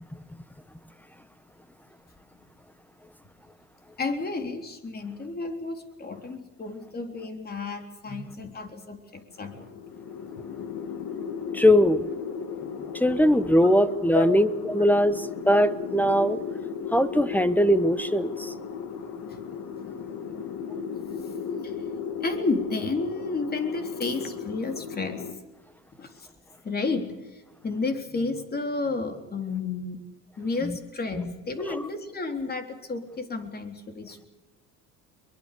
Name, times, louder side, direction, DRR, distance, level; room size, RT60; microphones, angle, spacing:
voice 1, 4.0-9.7 12.6-12.8 13.7-13.8 14.1-14.3 19.3-19.4 21.6-21.7 22.2-25.2 26.0-26.3 26.6-30.0 30.4-34.3, left 3 dB, 25° left, 6 dB, 3.8 m, -31 dB
sound 1, 9.4-25.3, left 6 dB, 55° left, 2.7 m, -36 dB
voice 2, 11.5-12.1 13.0-16.4 16.9-18.5 30.6-30.8 31.1-31.3 31.7-31.8, equal, 5° left, 13 dB, 1.1 m, -21 dB
23.5 x 23.0 x 6.9 m, 1.1 s
cardioid pair, 125°, 38 cm